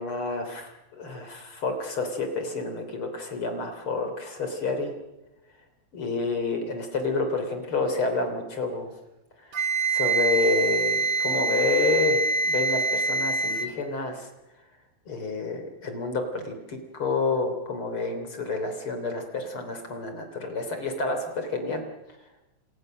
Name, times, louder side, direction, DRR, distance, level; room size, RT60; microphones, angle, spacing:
voice 1, 0.0-4.9 5.9-8.9 9.9-14.3 15.1-21.8, left 3 dB, 30° left, 6 dB, 3.2 m, -29 dB
Wind instrument woodwind instrument, 9.5-13.7, right 3 dB, 75° right, 1.2 m, -25 dB
28.5 x 28.0 x 6.5 m, 0.97 s
omnidirectional pair, 5.5 m